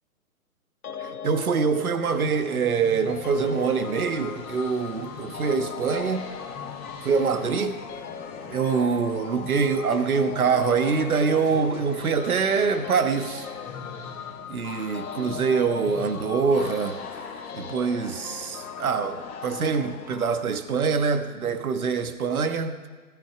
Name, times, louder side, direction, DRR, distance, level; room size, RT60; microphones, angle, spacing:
sound 1, 0.8-20.1, left 7 dB, 75° left, 0.9 m, -40 dB
voice 1, 1.0-6.3 7.0-7.8 8.5-13.5 14.5-17.0 17.5-22.9, right 5 dB, 70° right, 1.4 m, -24 dB
sound 2, 2.1-20.3, left 5 dB, 20° left, 2.3 m, -42 dB
14.5 x 14.0 x 4.9 m
figure-of-eight pair, 130°, 45 cm